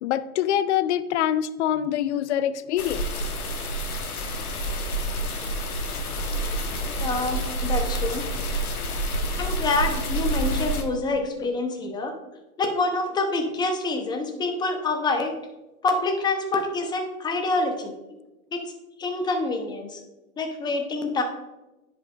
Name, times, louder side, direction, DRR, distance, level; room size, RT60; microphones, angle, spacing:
voice 1, 0.0-3.3, left 10 dB, 55° left, 15 dB, 0.5 m, -25 dB
sound 1, 2.8-10.8, right 1 dB, 80° left, 1.1 m, -28 dB
voice 2, 6.9-8.2 9.4-12.1 12.6-15.3 15.8-17.9 18.5-18.6 19.0-20.0 20.4-21.2, left 3 dB, 10° left, 5 dB, 0.6 m, -26 dB
10.0 x 5.2 x 2.4 m, 1.0 s
hypercardioid pair, 115°, 44 cm